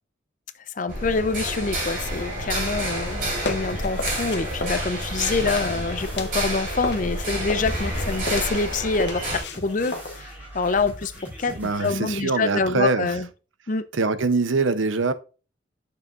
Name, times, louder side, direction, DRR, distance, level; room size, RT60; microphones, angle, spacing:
voice 1, 0.8-11.1 11.4-13.3 13.7-13.8, left 4 dB, 40° left, 0.5 m, -26 dB
sound 1, 0.9-9.4, right 1 dB, 45° right, 3.7 m, -29 dB
sound 2, 3.0-6.5 6.8-11.2, left 2 dB, 55° left, 0.9 m, -34 dB
sound 3, 3.0-11.9, equal, 10° right, 3.8 m, -42 dB
voice 2, 11.5-13.2 13.9-15.1, right 3 dB, 80° right, 0.7 m, -23 dB
8.3 x 6.7 x 2.5 m
head